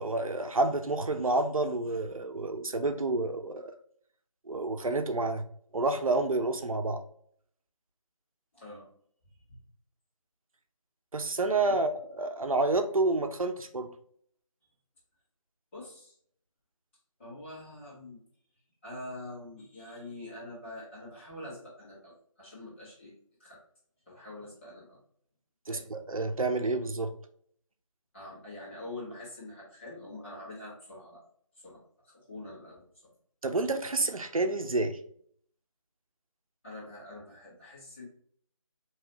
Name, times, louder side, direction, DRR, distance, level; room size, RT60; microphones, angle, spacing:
voice 1, 0.0-3.7 4.5-5.4 5.7-7.0 11.1-13.9 25.7-27.1 33.4-35.0, right 2 dB, 80° right, 8 dB, 0.7 m, -29 dB
voice 2, 8.5-8.9 11.7-11.8 15.7-16.1 17.2-18.2 18.8-23.1 23.4-23.6 24.0-25.0 25.7-25.8 28.1-31.2 31.5-33.1 36.6-38.0, left 1 dB, 20° left, -9 dB, 1.7 m, -45 dB
4.7 x 3.1 x 2.9 m, 0.63 s
figure-of-eight pair, 165°, 18 cm